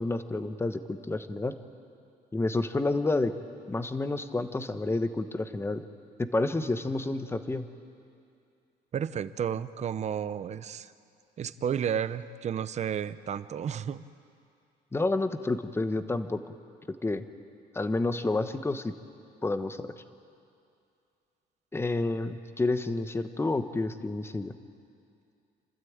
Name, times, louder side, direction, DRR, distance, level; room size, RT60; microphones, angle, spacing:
voice 1, 0.0-1.5 2.3-3.4 3.7-5.8 6.2-7.6 14.9-16.6 16.9-17.2 17.7-18.9 19.4-19.9 21.7-24.6, left 2 dB, 15° left, 10 dB, 1.0 m, -29 dB
voice 2, 8.9-10.9 11.4-14.1, right 8 dB, 40° right, 14 dB, 0.7 m, -32 dB
28.5 x 13.0 x 8.8 m, 2.5 s
cardioid pair, 110°, 17 cm